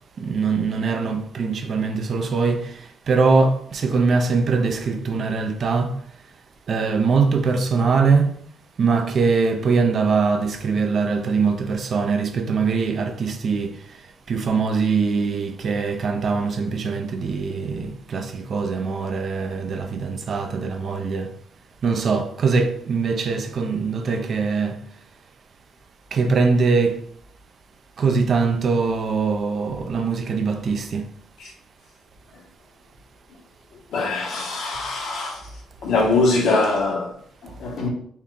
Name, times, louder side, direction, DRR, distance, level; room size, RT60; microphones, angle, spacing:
voice 1, 0.2-6.0 6.7-8.3 8.8-13.8 14.3-21.3 21.8-24.8 26.1-27.0 28.0-31.1, right 4 dB, 55° right, 0.5 m, -22 dB
voice 2, 33.9-35.5 35.8-37.9, left 3 dB, 75° left, 1.2 m, -23 dB
4.2 x 2.4 x 3.6 m
cardioid pair, 90°, 0 cm